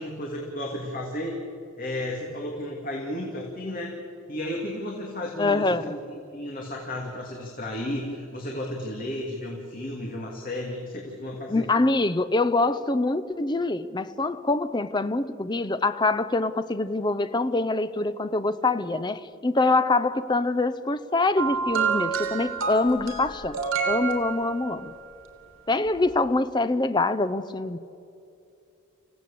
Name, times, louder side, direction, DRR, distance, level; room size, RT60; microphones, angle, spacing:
voice 1, 0.0-1.3 1.8-4.0 4.3-6.0 6.3-11.7, left 1 dB, 40° left, 2.6 m, -33 dB
voice 2, 5.4-6.0 11.5-23.6 23.8-24.9 25.7-27.8, left 2 dB, 20° left, 0.7 m, -25 dB
sound 1, 21.4-24.9 26.0-26.1, right 5 dB, 80° right, 3.3 m, -28 dB
28.0 x 16.0 x 8.6 m
head